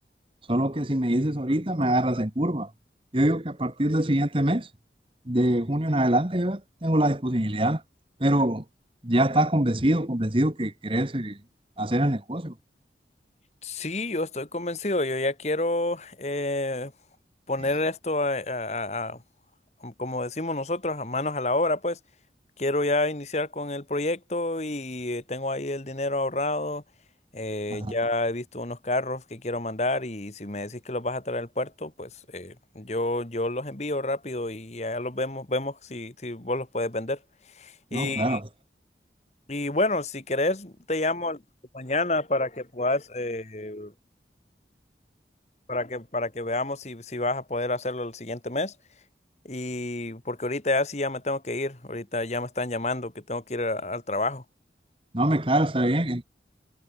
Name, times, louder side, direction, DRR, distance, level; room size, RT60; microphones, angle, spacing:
voice 1, 0.5-2.7 3.1-4.7 5.3-7.8 8.2-8.6 9.0-11.4 11.8-12.5 27.7-27.9 37.9-38.5 55.1-56.2, right 1 dB, 30° right, 1.8 m, -24 dB
voice 2, 13.6-16.9 17.5-19.2 19.8-22.0 22.6-26.8 27.3-37.2 37.6-38.4 39.5-41.4 41.7-43.9 45.7-48.7 49.5-54.4, left 2 dB, 40° left, 1.8 m, -29 dB
head